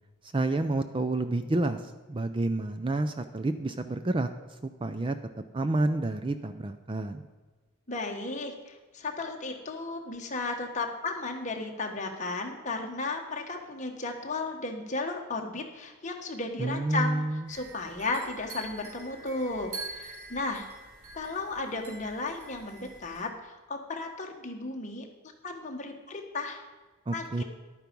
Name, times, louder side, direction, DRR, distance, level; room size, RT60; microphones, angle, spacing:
voice 1, 0.3-4.3 4.6-5.2 5.5-7.2 16.6-17.5 27.1-27.4, right 2 dB, 25° right, 10 dB, 0.4 m, -29 dB
voice 2, 7.9-17.2 17.5-20.7 21.1-25.1 25.4-26.6 27.1-27.4, left 3 dB, 35° left, 2 dB, 1.4 m, -34 dB
sound 1, 17.5-23.2, right 3 dB, 85° right, 3.4 m, -45 dB
11.5 x 9.2 x 5.3 m, 1.3 s
head